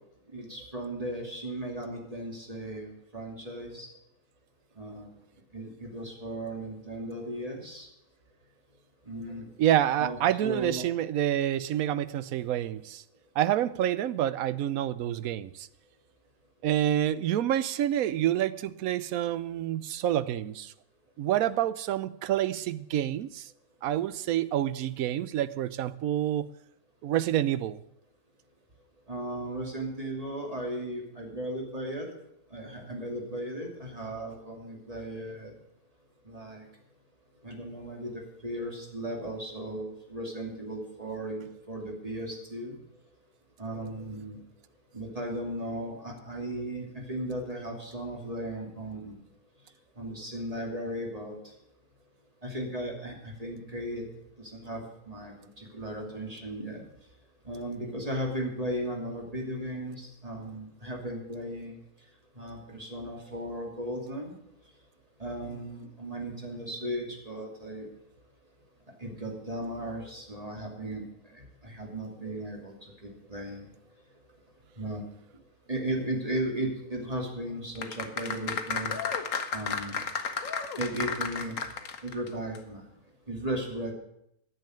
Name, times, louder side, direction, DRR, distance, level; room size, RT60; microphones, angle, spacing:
voice 1, 0.3-3.9 4.8-5.1 5.5-7.9 9.1-9.4 10.0-10.9 29.1-32.1 32.5-35.5 36.2-36.7 37.4-42.8 43.6-44.4 44.9-49.1 50.0-51.4 52.4-54.0 54.4-56.8 57.4-61.8 62.4-64.3 65.2-67.9 69.0-71.0 71.3-72.7 73.0-73.7 74.8-75.0 75.7-78.9 79.5-80.0 80.8-81.6 82.0-82.8 83.3-83.9, right 1 dB, 25° right, 2.8 m, -36 dB
voice 2, 9.6-13.0 13.4-15.7 16.6-20.7 21.2-23.5 23.8-26.5 27.0-27.8, right 12 dB, 75° right, 1.1 m, -28 dB
sound 1, 77.8-82.3 82.6-82.7, left 6 dB, 60° left, 1.4 m, -32 dB
10.5 x 7.6 x 9.1 m
omnidirectional pair, 1.5 m